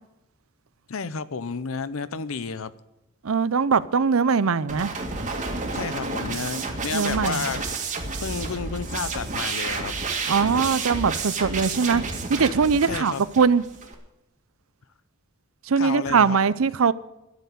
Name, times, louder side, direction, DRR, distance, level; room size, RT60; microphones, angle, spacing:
voice 1, 0.9-2.7 5.7-7.6 8.2-9.9 12.8-13.2 15.8-16.4, left 5 dB, 75° left, 0.7 m, -31 dB
voice 2, 3.2-4.9 6.9-7.4 10.3-12.0 12.3-13.6 15.7-16.9, right 5 dB, 75° right, 0.6 m, -21 dB
sound 1, 4.7-13.9, right 4 dB, 35° right, 2.0 m, -30 dB
12.5 x 6.9 x 9.9 m
head